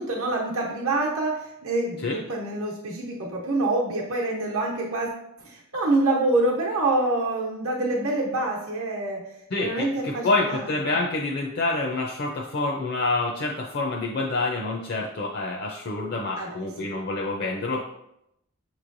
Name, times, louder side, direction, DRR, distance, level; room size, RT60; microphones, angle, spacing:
voice 1, 0.0-5.1 5.4-9.2 9.6-10.6 16.4-16.5, right 2 dB, 80° right, -4 dB, 0.9 m, -26 dB
voice 2, 9.5-17.8, left 2 dB, 50° left, -1 dB, 0.5 m, -27 dB
6.5 x 3.1 x 2.6 m, 0.79 s
head